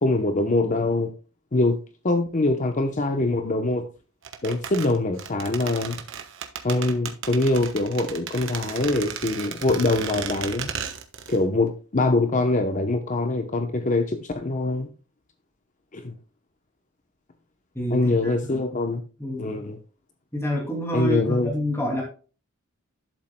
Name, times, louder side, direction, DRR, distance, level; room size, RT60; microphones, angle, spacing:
voice 1, 0.0-1.1 1.5-1.8 2.0-3.9 4.4-6.0 6.6-10.7 11.3-14.9 15.9-16.1 17.9-19.0 19.4-19.8 20.9-21.5, left 2 dB, 35° left, 0.8 m, -23 dB
sound 1, 4.2-11.4 11.7-11.8, right 7 dB, 60° right, 1.2 m, -35 dB
voice 2, 17.7-18.6 19.2-19.6 20.3-22.0, equal, 10° left, 2.4 m, -28 dB
12.0 x 7.4 x 2.2 m
head